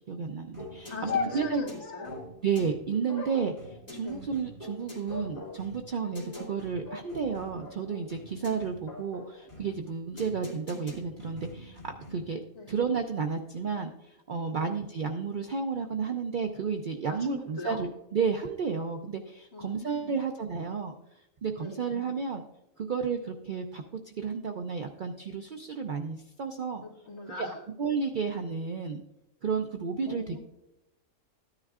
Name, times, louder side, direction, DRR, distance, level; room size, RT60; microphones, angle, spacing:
voice 1, 0.1-1.6 2.4-12.4 12.7-20.9 21.4-22.4 22.8-26.8 27.4-27.5 27.8-29.0 29.4-30.4, right 5 dB, 55° right, 5 dB, 0.6 m, -32 dB
sound 1, 0.5-12.4, left 1 dB, 30° left, 2.9 m, -44 dB
voice 2, 0.9-2.2 4.0-4.2 12.5-12.7 14.5-14.7 17.1-17.8 19.5-20.1 21.6-21.9 26.8-27.6 30.1-30.4, left 3 dB, 50° left, -4 dB, 2.4 m, -41 dB
sound 2, 1.1-2.3 3.1-4.4 5.1-5.6 6.0-6.5 7.2-8.5 9.3-9.8, left 5 dB, 85° left, 1.4 m, -39 dB
14.0 x 9.8 x 2.4 m, 0.92 s
omnidirectional pair, 1.3 m